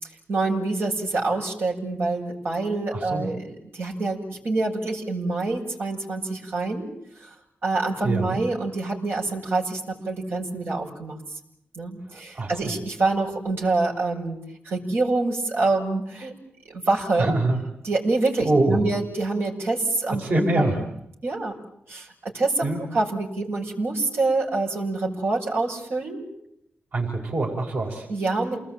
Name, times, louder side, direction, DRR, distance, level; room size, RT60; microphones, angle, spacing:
voice 1, 0.0-6.9 7.2-7.3 7.6-11.2 11.8-14.4 14.6-16.3 16.7-17.4 17.8-20.2 20.6-20.7 21.2-21.5 21.9-26.3 28.1-28.6, right 3 dB, 80° right, -1 dB, 7.0 m, -26 dB
voice 2, 2.9-3.3 8.0-8.3 12.1-12.7 17.2-17.6 18.4-18.8 20.2-20.8 22.6-22.8 26.9-28.1, right 2 dB, 60° right, 0 dB, 5.3 m, -24 dB
29.0 x 20.5 x 9.1 m, 0.76 s
wide cardioid pair, 110°, 4 cm